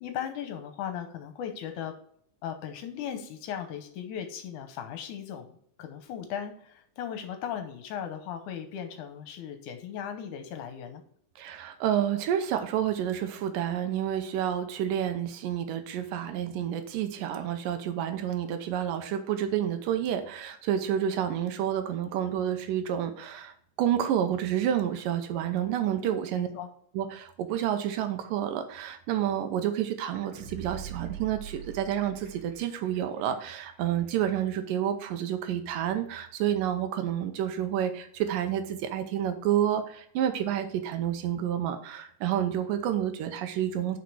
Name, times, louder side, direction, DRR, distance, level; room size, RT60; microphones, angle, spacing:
voice 1, 0.0-1.9 2.4-5.5 5.8-11.0 26.0-26.7, left 9 dB, 75° left, 7 dB, 2.2 m, -37 dB
voice 2, 11.4-26.5 26.9-44.0, right 10 dB, 80° right, 8 dB, 2.5 m, -29 dB
sound 1, 30.1-33.0 33.3-33.4, right 8 dB, 45° right, 1.6 m, -42 dB
6.3 x 5.7 x 4.8 m, 0.63 s
omnidirectional pair, 3.8 m